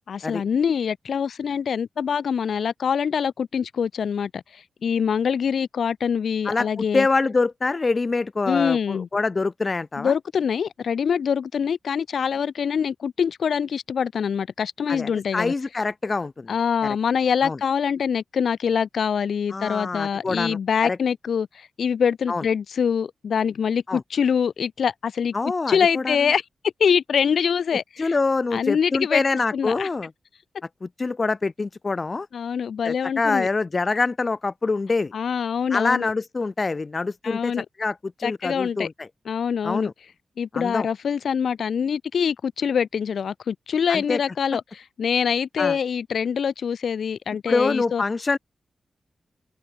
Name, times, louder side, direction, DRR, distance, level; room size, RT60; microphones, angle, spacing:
voice 1, 0.1-7.1 8.5-9.1 10.0-15.5 16.5-25.3 25.7-26.4 26.8-28.1 28.5-29.2 29.5-29.9 32.3-33.5 35.1-36.1 37.2-37.6 38.2-38.9 39.2-39.9 40.4-48.0, left 7 dB, 70° left, 8.0 m, -24 dB
voice 2, 6.4-10.1 14.9-16.5 16.8-17.0 17.4-17.6 19.5-21.0 22.3-22.4 23.9-24.0 25.3-26.2 28.0-30.1 30.8-32.3 32.8-35.1 35.7-37.5 37.8-39.1 39.6-39.9 40.5-40.9 43.9-44.2 45.6-45.8 47.5-48.4, left 3 dB, 30° left, 4.0 m, -25 dB
open air
wide cardioid pair, 155°, 0 cm